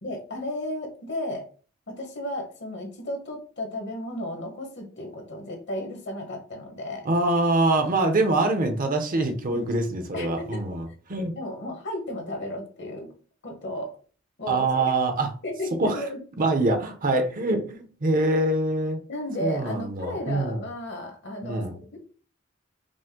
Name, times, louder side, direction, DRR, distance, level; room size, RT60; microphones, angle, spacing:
voice 1, 0.0-1.4 1.9-7.1 9.5-9.7 10.1-10.6 11.3-13.1 13.4-13.9 14.4-14.8 15.4-16.2 19.1-22.0, left 1 dB, 60° left, 3 dB, 1.2 m, -34 dB
voice 2, 7.0-11.3 14.5-15.3 15.8-16.0 16.4-17.6 18.0-19.0 19.4-20.6 21.4-21.7, right 2 dB, 45° right, 6 dB, 0.7 m, -24 dB
5.1 x 2.1 x 3.6 m, 0.41 s
head